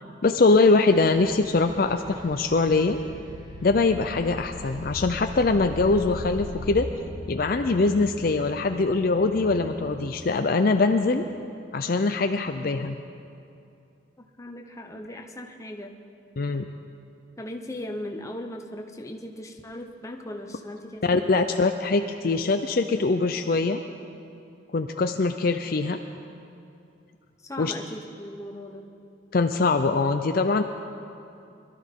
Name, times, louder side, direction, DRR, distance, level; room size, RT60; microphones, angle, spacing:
voice 1, 0.2-3.0 3.6-6.9 7.3-11.2 11.7-13.0 16.4-16.7 21.0-23.8 24.7-26.0 27.6-27.7 29.3-30.6, left 3 dB, 50° left, 7 dB, 0.5 m, -22 dB
sound 1, 0.9-6.7, left 2 dB, 20° right, 1.1 m, -41 dB
sound 2, 4.6-10.4, left 1 dB, ahead, 2.1 m, -41 dB
voice 2, 14.4-16.0 17.4-21.5 27.4-29.0, left 1 dB, 15° left, 2 dB, 0.9 m, -38 dB
22.5 x 13.0 x 3.7 m, 2.6 s
head